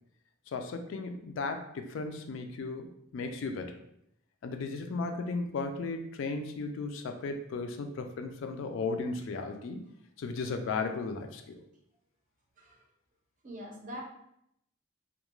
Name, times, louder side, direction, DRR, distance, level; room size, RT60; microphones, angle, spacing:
voice 1, 0.5-2.9 3.1-3.8 4.4-9.9 10.2-11.6, left 3 dB, 70° left, 6 dB, 0.3 m, -35 dB
voice 2, 13.4-14.0, equal, 40° right, 0 dB, 0.5 m, -43 dB
2.3 x 2.2 x 3.0 m, 0.76 s
head